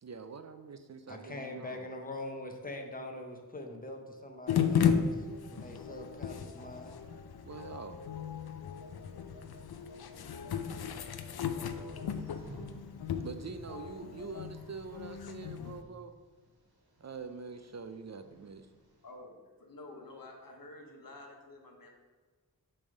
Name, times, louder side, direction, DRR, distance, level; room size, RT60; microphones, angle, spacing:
voice 1, 0.0-1.9 7.4-8.0 13.2-16.1 17.0-18.7, right 5 dB, 45° right, 9 dB, 0.4 m, -45 dB
voice 2, 1.1-6.9, left 1 dB, 25° left, 3 dB, 0.8 m, -43 dB
sound 1, 4.5-15.8, left 7 dB, 85° left, 0.5 m, -35 dB
sound 2, 9.3-19.1, right 1 dB, 90° right, 1.4 m, -58 dB
voice 3, 19.0-21.9, left 2 dB, 65° left, 2 dB, 1.1 m, -50 dB
6.7 x 3.4 x 5.3 m, 1.4 s
wide cardioid pair, 70°, 36 cm